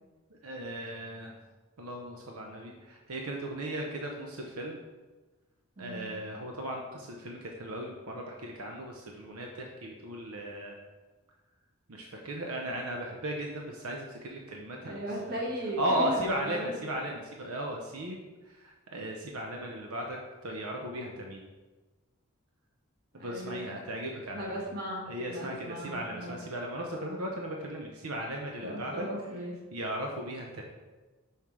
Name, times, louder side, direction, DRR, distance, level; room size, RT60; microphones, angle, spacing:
voice 1, 0.4-1.4 1.8-4.8 5.8-10.8 11.9-15.0 15.2-15.4 15.8-21.4 23.1-24.4 25.1-29.1 29.7-30.6, right 1 dB, 85° right, 1 dB, 0.8 m, -36 dB
voice 2, 5.8-6.1 14.8-16.8 23.1-23.7 24.3-26.4 28.6-29.6, equal, 45° right, -2 dB, 1.6 m, -37 dB
5.7 x 4.4 x 4.7 m, 1.2 s
head